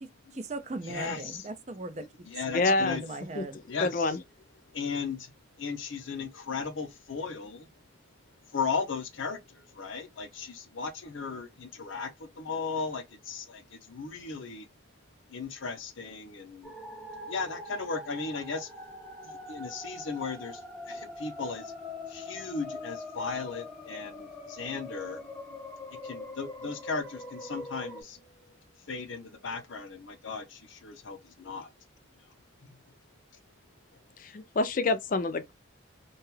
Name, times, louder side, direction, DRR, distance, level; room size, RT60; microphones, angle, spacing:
voice 1, 0.0-2.1 2.7-3.6, right 2 dB, 35° right, 0.4 m, -39 dB
voice 2, 0.9-1.4 2.3-3.0 3.7-4.1 4.7-5.2 5.6-7.7 8.5-9.4 9.8-14.7 15.3-16.7 17.3-18.7 19.5-20.6 20.9-21.7 22.1-25.2 26.0-28.2 28.9-31.7, left 5 dB, 90° left, 0.8 m, -36 dB
voice 3, 2.5-3.0 3.4-3.5 3.8-4.2 34.2-35.5, left 3 dB, 45° left, 0.4 m, -27 dB
sound 1, 16.6-28.0, left 2 dB, ahead, 0.8 m, -43 dB
2.7 x 2.3 x 3.1 m
head